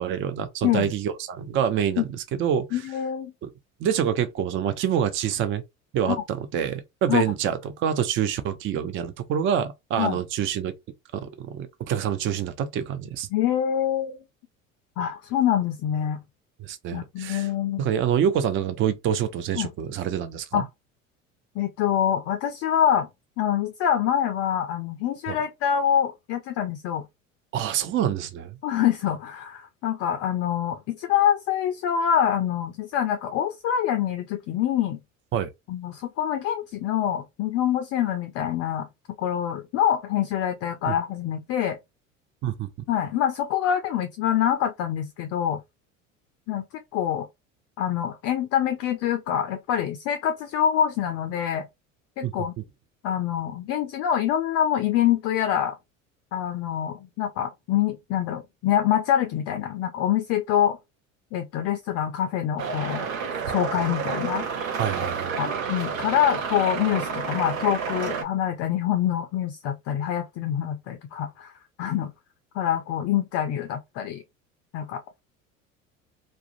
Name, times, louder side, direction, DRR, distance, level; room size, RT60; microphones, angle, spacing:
voice 1, 0.0-2.8 3.4-3.5 3.8-5.6 5.9-10.7 11.2-13.3 16.6-17.5 17.8-20.6 25.3-25.4 27.5-28.6 35.3-35.5 40.9-41.0 42.4-42.7 52.2-52.5 64.8-65.4, right 9 dB, 30° right, 0.5 m, -26 dB
voice 2, 2.7-3.3 6.1-6.2 7.1-7.2 10.0-10.2 13.3-14.2 15.0-16.2 16.9-17.8 19.6-19.7 20.5-20.7 21.6-23.1 23.4-27.0 28.6-35.0 35.7-38.9 39.2-41.8 42.9-45.6 46.5-46.6 46.9-47.3 47.8-51.7 52.2-52.5 53.0-55.8 56.3-60.8 61.3-63.1 63.5-64.5 65.4-71.5 71.8-72.1 72.5-74.2 74.7-75.2, left 10 dB, 40° left, 0.4 m, -25 dB
sound 1, 62.6-68.2, right 6 dB, 80° right, 0.6 m, -30 dB
2.4 x 2.1 x 2.4 m
hypercardioid pair, 70°, 39 cm